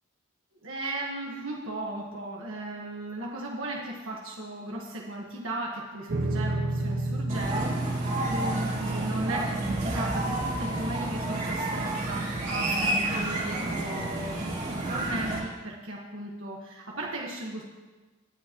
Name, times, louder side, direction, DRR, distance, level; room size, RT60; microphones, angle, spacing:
voice 1, 0.6-7.7 8.2-17.6, right 1 dB, 65° right, -3 dB, 1.6 m, -36 dB
sound 1, 6.1-12.6, right 1 dB, 50° right, 0.9 m, -33 dB
sound 2, 7.3-15.4, right 2 dB, 35° right, 2.2 m, -30 dB
17.0 x 9.6 x 3.1 m, 1.2 s
head